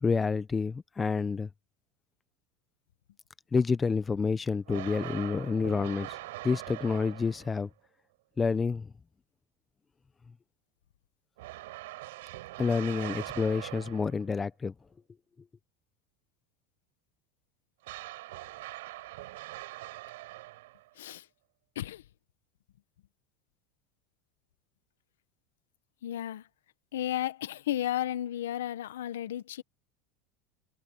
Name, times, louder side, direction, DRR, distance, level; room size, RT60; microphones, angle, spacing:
voice 1, 0.0-1.5 3.5-6.2 6.4-7.7 8.4-8.9 12.6-14.7, left 5 dB, 20° left, 0.9 m, -28 dB
sound 1, 4.7-7.6 11.4-14.3 17.8-20.9, right 18 dB, 80° right, 5.5 m, -42 dB
voice 2, 20.9-21.3 21.7-22.0 26.0-26.5 26.9-29.6, left 12 dB, 85° left, 1.3 m, -33 dB
hypercardioid pair, 100°, 0 cm